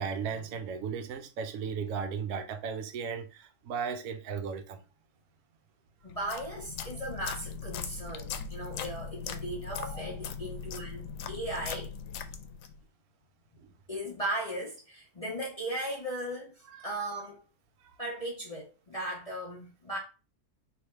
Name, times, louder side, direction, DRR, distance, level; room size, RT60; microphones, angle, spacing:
voice 1, 0.0-4.8 13.6-13.7 16.8-16.9 17.8-18.0, right 6 dB, 70° right, 1.0 m, -36 dB
voice 2, 6.0-11.9 13.9-17.4 18.0-20.0, right 1 dB, 30° left, 0.8 m, -37 dB
sound 1, 6.1-12.8, left 6 dB, 85° left, 1.1 m, -39 dB
3.4 x 2.7 x 4.4 m
omnidirectional pair, 1.7 m